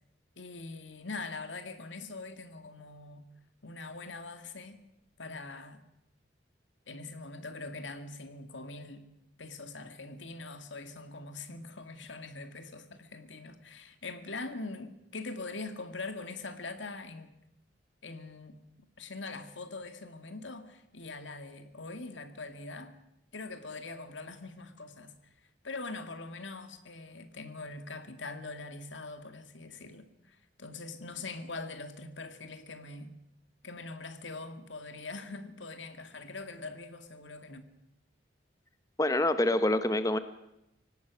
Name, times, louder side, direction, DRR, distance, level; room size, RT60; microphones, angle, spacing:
voice 1, 0.4-3.3 3.6-4.8 5.2-5.8 6.9-9.1 9.4-17.3 18.0-18.6 19.0-23.0 23.3-25.1 25.6-33.1 33.6-37.6, left 3 dB, 90° left, 2.1 m, -43 dB
voice 2, 39.0-40.2, left 1 dB, 20° left, 0.9 m, -26 dB
25.0 x 18.0 x 6.3 m
head